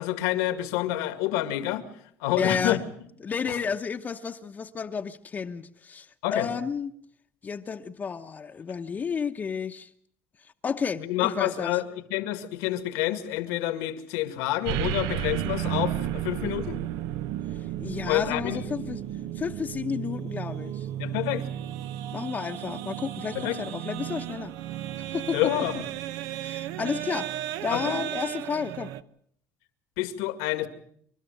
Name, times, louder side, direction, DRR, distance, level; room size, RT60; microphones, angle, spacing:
voice 1, 0.0-1.8 2.2-2.8 6.2-6.5 11.0-11.8 12.1-16.8 18.1-18.9 21.0-21.5 23.4-23.6 25.3-25.8 27.7-28.0 30.0-30.7, left 14 dB, 90° left, 10 dB, 2.1 m, -28 dB
voice 2, 2.4-2.8 3.2-6.9 7.4-9.9 10.4-11.8 17.5-19.0 19.3-20.9 22.1-24.5 25.0-25.4 26.4-27.3 27.6-28.9, left 6 dB, 30° left, 4 dB, 0.9 m, -32 dB
sound 1, 14.7-29.0, right 12 dB, 80° right, 0.8 m, -33 dB
28.0 x 13.0 x 9.1 m, 0.66 s
cardioid pair, 110°, 6 cm